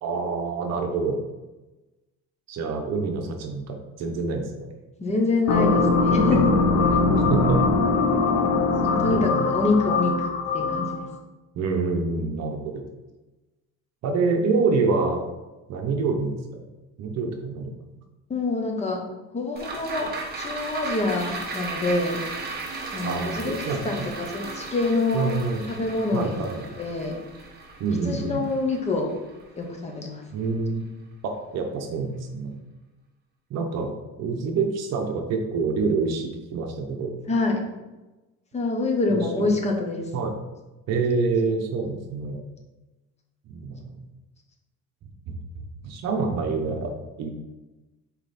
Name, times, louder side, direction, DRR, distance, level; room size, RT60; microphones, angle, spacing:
voice 1, 0.0-1.2 2.5-4.7 6.3-6.4 7.0-7.6 9.0-9.5 11.5-12.9 14.0-15.2 15.7-16.6 17.0-17.7 23.0-24.1 25.1-25.6 26.1-26.7 27.8-28.4 30.3-30.8 31.2-32.5 33.5-33.9 34.2-37.1 39.1-39.5 40.1-40.4 40.9-42.4 43.5-44.1 45.3-45.4 45.8-46.9 47.2-47.3, right 4 dB, 55° right, 3 dB, 1.0 m, -27 dB
voice 2, 5.0-7.0 8.9-11.1 18.3-19.0 19.3-20.1 20.3-22.2 22.9-25.3 25.7-26.5 26.8-27.2 28.0-29.1 29.6-30.2 37.3-37.6 38.5-40.1, left 3 dB, 20° left, 1 dB, 1.1 m, -26 dB
sound 1, 5.5-11.1, left 3 dB, 60° left, 0.8 m, -21 dB
sound 2, 19.6-30.1 30.4-30.5, right 3 dB, 30° right, 1.2 m, -36 dB
5.8 x 4.3 x 4.2 m, 1.1 s
cardioid pair, 140°, 31 cm